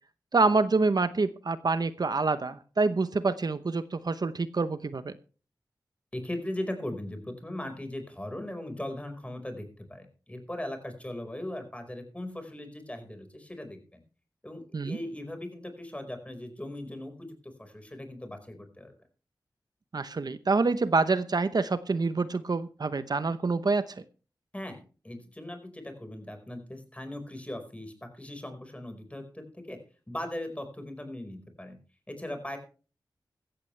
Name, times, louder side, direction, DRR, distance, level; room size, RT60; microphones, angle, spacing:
voice 1, 0.3-5.1 14.7-15.0 19.9-23.8, right 3 dB, 55° right, 12 dB, 0.9 m, -26 dB
voice 2, 6.1-14.0 14.4-18.9 24.5-24.8 25.0-29.8 30.1-31.8 32.1-32.6, left 1 dB, 15° left, 6 dB, 4.9 m, -39 dB
15.0 x 15.0 x 3.3 m, 0.37 s
cardioid pair, 50°, 8 cm